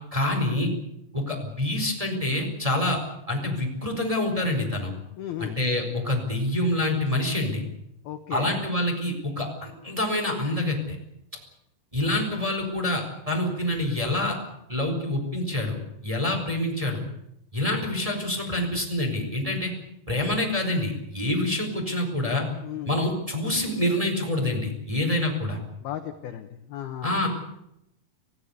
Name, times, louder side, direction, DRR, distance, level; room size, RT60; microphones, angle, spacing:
voice 1, 0.1-0.7 1.1-3.0 3.3-4.9 5.4-7.6 8.3-11.0 11.9-14.4 14.7-15.8 16.0-17.0 17.5-19.7 20.1-22.5 22.8-25.6 27.0-27.3, left 1 dB, 5° right, 2 dB, 3.7 m, -26 dB
voice 2, 5.2-5.6 8.1-8.5 22.6-22.9 25.8-27.2, left 11 dB, 70° left, 7 dB, 2.4 m, -35 dB
27.0 x 16.0 x 8.2 m, 0.81 s
omnidirectional pair, 5.9 m